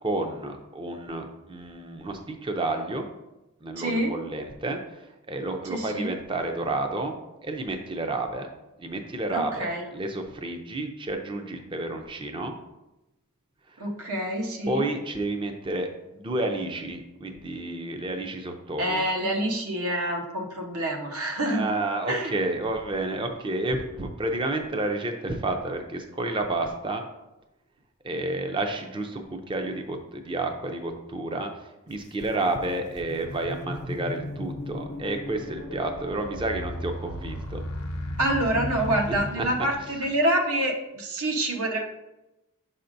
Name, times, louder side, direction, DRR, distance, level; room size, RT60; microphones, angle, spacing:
voice 1, 0.0-3.1 3.6-7.2 7.4-8.5 8.8-12.5 14.7-19.0 21.5-27.0 28.0-31.5 31.9-37.6 39.1-39.4, right 2 dB, 20° right, 5 dB, 0.4 m, -30 dB
voice 2, 3.8-4.1 5.7-6.1 9.3-9.8 13.8-14.9 18.8-21.7 22.1-22.3 38.2-41.8, right 1 dB, 80° right, 1 dB, 1.0 m, -27 dB
sound 1, 31.9-32.0 32.6-40.2, left 1 dB, 85° left, 0.8 m, -36 dB
7.1 x 5.6 x 2.6 m, 0.96 s
head